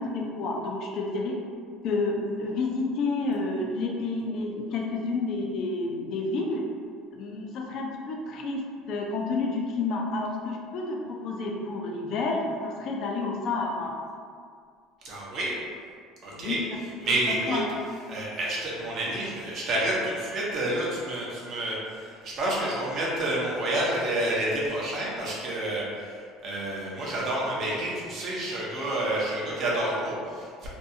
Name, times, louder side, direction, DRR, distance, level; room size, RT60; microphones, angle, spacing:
voice 1, 0.0-1.4 1.8-6.6 7.1-14.0 16.3-16.6 17.0-17.7, left 3 dB, 55° left, 0 dB, 0.4 m, -30 dB
voice 2, 15.0-15.5 16.2-16.6 17.0-17.6 18.1-30.7, right 1 dB, 45° right, -5 dB, 0.7 m, -29 dB
2.6 x 2.3 x 2.7 m, 2.2 s
cardioid pair, 135°, 0 cm